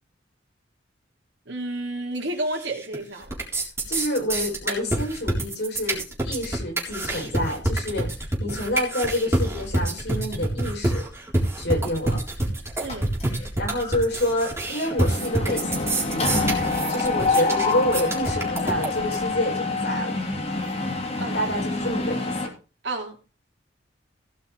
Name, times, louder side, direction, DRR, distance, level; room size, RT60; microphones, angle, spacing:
voice 1, 1.5-3.3 12.8-13.1 21.2-21.4 22.8-23.2, right 2 dB, 70° right, 3.2 m, -30 dB
sound 1, 2.5-3.0 3.2-19.2, right 2 dB, 15° right, 3.8 m, -27 dB
voice 2, 3.9-8.1 8.4-11.1 11.6-12.2 13.0-13.1 13.6-16.5 16.9-20.2 21.3-22.5, left 1 dB, 60° left, 7.4 m, -28 dB
Mechanisms, 12.9-13.5 13.8-14.0 14.3-22.5, left 3 dB, 35° left, 2.9 m, -27 dB
17.0 x 5.8 x 5.2 m
head